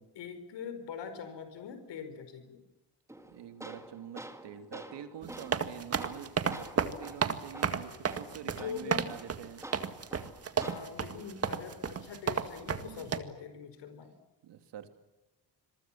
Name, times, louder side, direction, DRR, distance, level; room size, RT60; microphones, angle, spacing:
voice 1, 0.1-2.6 8.4-9.1 10.6-14.1, left 7 dB, 80° left, 9 dB, 4.7 m, -43 dB
Tools, 3.1-11.1, right 1 dB, 5° right, 1.9 m, -48 dB
voice 2, 3.3-9.6 12.8-13.1 14.4-14.9, right 9 dB, 85° right, 8 dB, 2.9 m, -46 dB
sound 1, 5.2-13.2, right 6 dB, 35° right, 1.9 m, -32 dB
27.0 x 23.0 x 7.5 m, 1.0 s
cardioid pair, 150°, 41 cm